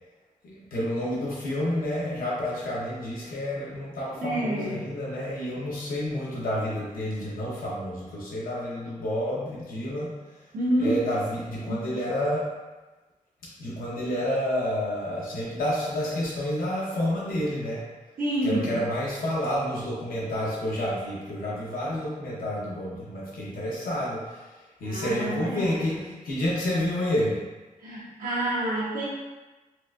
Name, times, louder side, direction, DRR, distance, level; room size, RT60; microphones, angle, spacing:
voice 1, 0.4-10.1 10.8-12.5 13.6-17.8 18.4-24.5 24.8-27.4, left 1 dB, 85° left, -6 dB, 0.8 m, -29 dB
voice 2, 4.2-4.9 10.5-11.0 11.7-11.8 18.2-18.8 24.8-26.0 27.8-29.1, right 1 dB, 80° right, -7 dB, 0.9 m, -28 dB
4.2 x 2.3 x 2.5 m, 1.2 s
wide cardioid pair, 170°, 14 cm